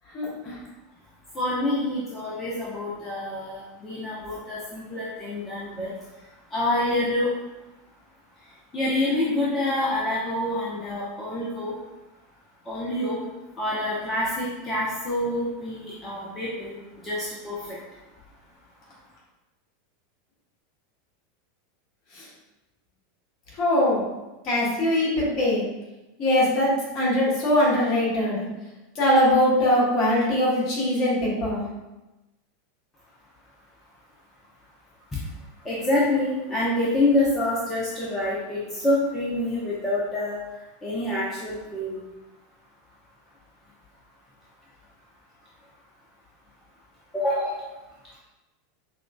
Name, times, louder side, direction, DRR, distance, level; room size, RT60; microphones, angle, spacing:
voice 1, 0.1-0.5 22.2-22.3 23.6-24.0 24.4-25.6 26.2-28.4 28.9-31.6, left 1 dB, 45° left, -5 dB, 1.5 m, -22 dB
voice 2, 1.3-5.9 6.5-7.3 8.7-11.7 12.7-13.2 13.6-17.8 35.1-35.2 35.6-40.4 40.8-42.0 47.1-47.5, left 1 dB, 20° left, -7 dB, 0.8 m, -27 dB
6.0 x 2.4 x 2.3 m, 1.0 s
figure-of-eight pair, 85°, 0 cm